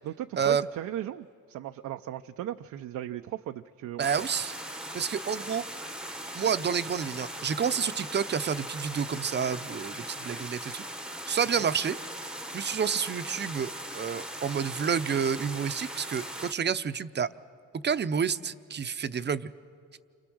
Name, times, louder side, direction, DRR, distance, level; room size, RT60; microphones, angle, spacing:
voice 1, 0.0-4.3 11.6-11.7, right 12 dB, 75° right, 7 dB, 0.6 m, -37 dB
sound 1, 4.0-16.5, right 1 dB, 5° right, 1.0 m, -39 dB
voice 2, 4.0-4.5 4.9-5.6 6.3-10.8 11.3-12.0 12.5-17.3 17.8-19.5, right 7 dB, 35° right, 12 dB, 0.7 m, -29 dB
29.5 x 25.0 x 6.3 m, 2.2 s
cardioid pair, 90°, 30 cm